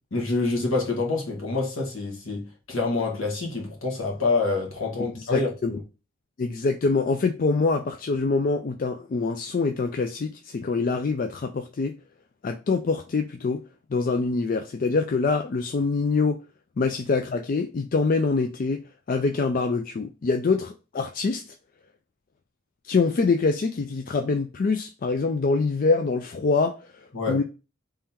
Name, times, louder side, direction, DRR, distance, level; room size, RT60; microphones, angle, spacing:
voice 1, 0.1-5.8 27.1-27.4, left 3 dB, 65° left, 1.7 m, -27 dB
voice 2, 5.2-5.8 6.4-11.9 12.4-13.6 13.9-16.4 16.8-18.8 19.1-21.5 22.8-27.4, left 4 dB, 40° left, 0.3 m, -25 dB
3.7 x 3.3 x 4.3 m
head